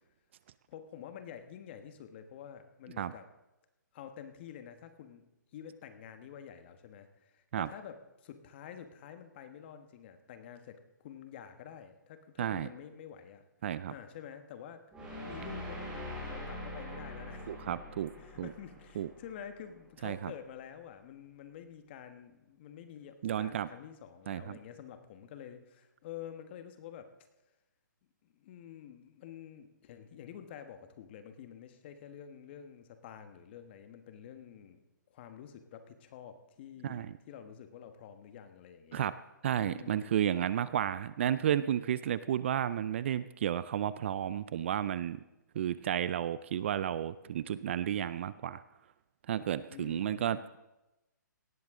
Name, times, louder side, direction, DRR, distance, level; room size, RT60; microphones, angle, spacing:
voice 1, 0.7-3.3 3.9-5.2 5.5-8.0 8.2-13.4 13.9-14.9 15.2-17.6 18.2-27.1 28.2-39.1 39.6-40.1 49.7-50.5, left 9 dB, 35° left, 9 dB, 1.3 m, -49 dB
voice 2, 13.6-13.9 17.5-18.1 18.4-18.5 19.0-19.1 20.0-20.3 23.2-23.7 24.3-24.6 36.8-37.1 38.9-39.1 39.4-45.2 45.6-48.6 49.3-50.6, right 10 dB, 35° right, 16 dB, 0.4 m, -32 dB
sound 1, 14.9-20.0, left 1 dB, 10° right, 4.7 m, -44 dB
18.0 x 13.0 x 3.7 m, 0.97 s
hypercardioid pair, 155°, 11 cm